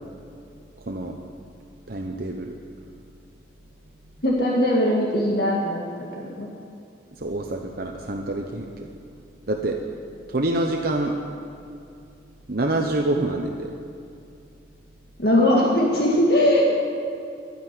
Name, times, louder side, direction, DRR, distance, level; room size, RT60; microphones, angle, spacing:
voice 1, 0.8-1.1 1.9-2.5 7.2-8.9 9.5-9.8 10.3-11.2 12.5-13.7, right 2 dB, 55° right, 2 dB, 0.9 m, -26 dB
voice 2, 4.2-5.8 6.2-6.5 15.2-16.7, left 1 dB, 55° left, -3 dB, 2.0 m, -20 dB
12.0 x 10.5 x 9.6 m, 2.6 s
head